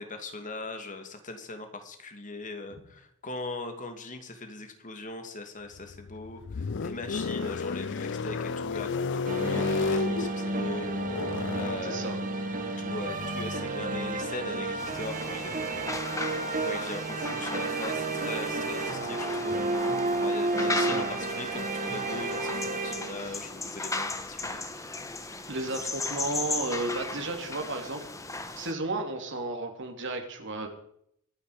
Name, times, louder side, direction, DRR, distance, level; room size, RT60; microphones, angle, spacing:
voice 1, 0.0-12.3 12.8-15.9 16.6-19.6 20.2-24.6, left 2 dB, 35° left, 6 dB, 2.4 m, -40 dB
sound 1, 5.7-16.0, left 5 dB, 55° left, 0.5 m, -34 dB
sound 2, 9.3-23.4, right 2 dB, 35° right, 1.7 m, -31 dB
voice 2, 11.8-12.2 20.6-21.1 23.0-23.4 25.5-28.1 28.6-30.7, right 2 dB, 55° right, 3 dB, 3.2 m, -34 dB
sound 3, 14.8-28.7, left 3 dB, 15° left, 1.2 m, -36 dB
24.0 x 10.0 x 5.1 m, 0.70 s
head